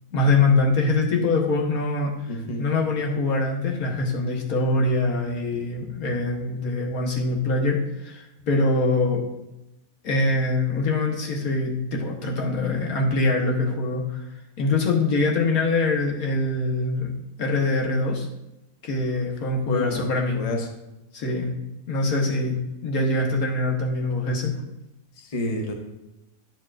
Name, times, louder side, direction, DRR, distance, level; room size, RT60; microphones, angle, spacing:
voice 1, 0.1-2.1 2.6-9.2 10.0-14.2 14.6-17.1 17.4-18.3 18.8-20.4 21.1-21.5 21.9-24.5, left 2 dB, 85° left, -1 dB, 1.6 m, -23 dB
voice 2, 2.3-2.6 19.7-20.1 20.3-20.7 25.2-25.7, left 1 dB, 30° left, 3 dB, 0.8 m, -29 dB
9.2 x 7.1 x 2.5 m, 0.92 s
omnidirectional pair, 1.5 m